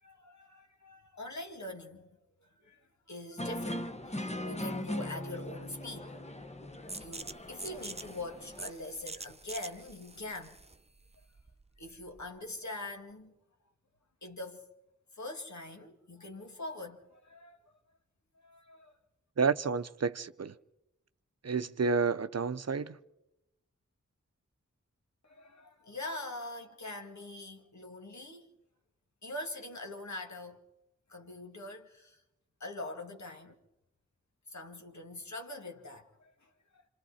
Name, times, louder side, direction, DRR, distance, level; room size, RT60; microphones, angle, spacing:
voice 1, 0.0-2.1 2.4-6.2 6.9-10.6 11.8-13.3 14.2-14.7 15.1-17.8 18.3-18.9 25.2-28.5 29.2-30.6 31.1-32.2 32.6-33.6 34.5-36.9, left 2 dB, 70° left, 2.3 m, -44 dB
sound 1, 3.4-8.7, left 1 dB, 20° left, 1.1 m, -39 dB
sound 2, 6.9-12.4, right 3 dB, 20° right, 0.8 m, -46 dB
voice 2, 19.4-20.5 21.4-23.0, right 5 dB, 55° right, 0.7 m, -30 dB
27.0 x 27.0 x 4.3 m
cardioid pair, 45°, 30 cm